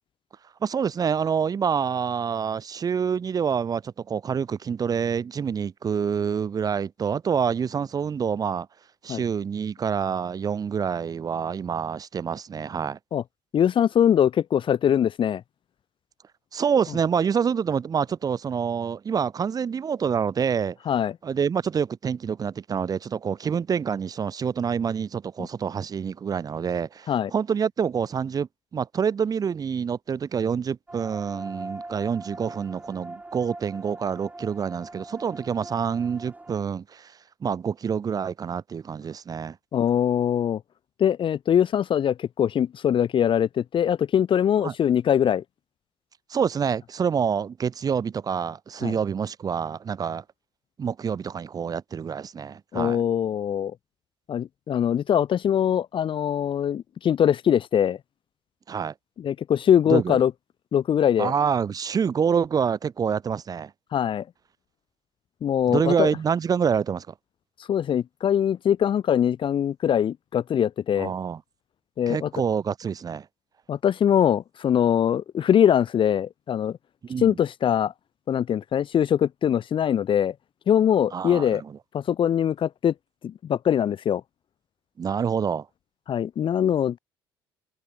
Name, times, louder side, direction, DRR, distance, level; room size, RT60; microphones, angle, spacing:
voice 1, 0.6-8.7 9.0-13.0 16.5-20.8 21.2-37.1 37.4-39.6 44.6-44.7 46.3-50.2 50.8-53.0 58.7-58.9 59.9-60.2 61.2-63.7 65.7-67.1 71.0-71.4 72.1-73.3 77.1-77.4 81.1-81.7 85.0-85.7, right 7 dB, 30° right, 0.7 m, -27 dB
voice 2, 13.5-15.4 20.9-21.1 27.1-27.3 39.7-40.6 41.0-45.4 48.8-49.0 52.7-53.7 54.3-58.0 59.2-60.3 60.7-61.3 63.9-64.2 65.4-66.1 67.7-71.1 72.0-72.3 73.7-76.8 77.2-77.9 78.3-80.3 80.7-81.6 81.9-82.9 83.2-84.2 86.1-87.0, left 9 dB, 40° left, 1.5 m, -22 dB
sound 1, 30.9-36.7, right 2 dB, 10° right, 5.0 m, -41 dB
figure-of-eight pair, 60°, 13 cm